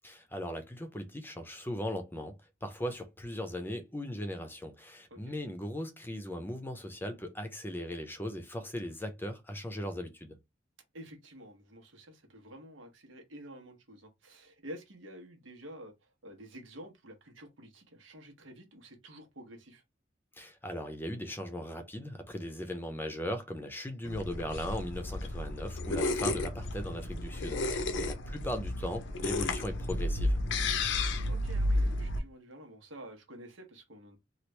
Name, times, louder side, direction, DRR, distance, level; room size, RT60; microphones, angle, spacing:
voice 1, 0.0-10.4 20.4-30.4, equal, 10° left, 0.6 m, -38 dB
voice 2, 10.9-19.8 27.8-28.1 30.9-34.2, equal, 90° right, 1.1 m, -50 dB
sound 1, 24.0-32.2, left 2 dB, 70° left, 0.6 m, -32 dB
3.0 x 2.4 x 3.2 m
head